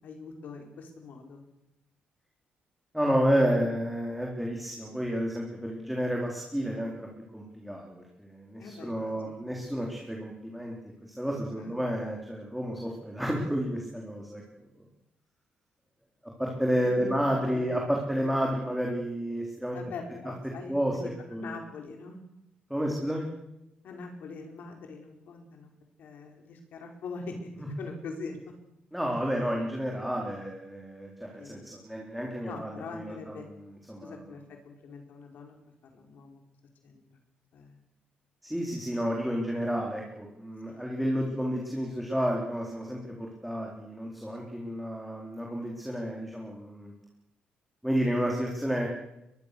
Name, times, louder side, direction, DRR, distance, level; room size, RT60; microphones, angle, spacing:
voice 1, 0.0-1.4 3.3-3.6 8.6-9.4 11.5-11.7 16.8-17.1 17.4-17.7 19.7-21.1 21.4-22.2 23.8-25.7 26.0-28.4 31.4-31.7 32.4-33.5 34.0-35.6 35.8-36.4 36.8-37.2 37.5-37.8 38.9-39.0 40.7-40.8, left 4 dB, 65° left, 3 dB, 4.9 m, -43 dB
voice 2, 2.9-7.1 7.3-10.8 11.2-14.4 16.4-19.8 20.7-21.0 21.3-21.5 22.7-23.3 28.9-33.0 33.9-34.1 38.5-46.9 47.8-48.9, equal, ahead, -1 dB, 4.0 m, -30 dB
23.0 x 22.5 x 6.8 m, 0.88 s
cardioid pair, 135°, 3 cm